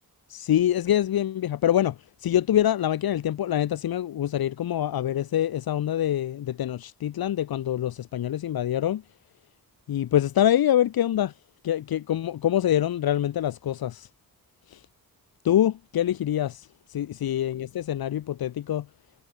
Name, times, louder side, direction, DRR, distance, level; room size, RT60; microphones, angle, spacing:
voice 1, 0.3-9.0 9.9-11.3 11.6-14.1 14.7-14.8 15.4-18.8, left 11 dB, 80° left, 1.3 m, -25 dB
cardioid pair, 50°, 36 cm